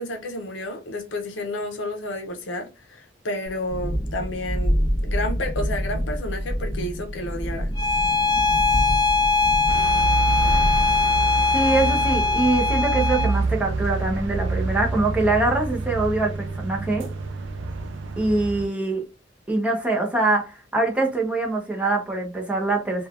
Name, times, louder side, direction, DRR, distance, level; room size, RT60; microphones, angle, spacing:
voice 1, 0.0-4.8 5.0-7.7, left 1 dB, 85° left, 0.6 m, -31 dB
Thunderstorm, 3.5-15.0, equal, 30° right, 1.4 m, -28 dB
Bowed string instrument, 7.8-13.4, left 3 dB, 20° left, 0.3 m, -21 dB
sound 1, 9.7-18.7, right 3 dB, 85° right, 0.4 m, -27 dB
voice 2, 11.5-17.1 18.2-19.0 19.5-23.1, right 2 dB, 5° right, 0.7 m, -23 dB
3.1 x 2.3 x 2.4 m
head